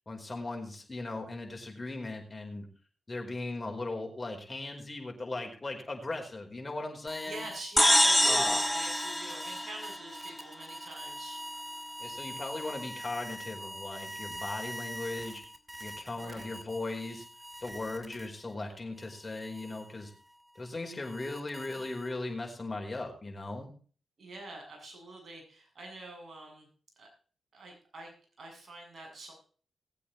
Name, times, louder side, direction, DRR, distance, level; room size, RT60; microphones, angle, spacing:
voice 1, 0.1-2.6 3.1-7.4 8.2-8.6 12.0-15.4 15.8-17.2 17.6-20.1 20.5-23.7, left 2 dB, 35° left, 2 dB, 5.0 m, -38 dB
sound 1, 7.1-18.5 19.0-22.3, equal, 25° right, 2.4 m, -44 dB
voice 2, 7.2-11.4 16.1-16.5 21.8-21.9 24.2-26.7 27.0-27.1 27.5-28.1 28.4-29.3, right 2 dB, 55° right, 1 dB, 7.4 m, -45 dB
sound 2, 7.8-10.4, equal, 5° left, 1.0 m, -25 dB
19.5 x 8.4 x 4.3 m, 0.40 s
supercardioid pair, 40°, 0 cm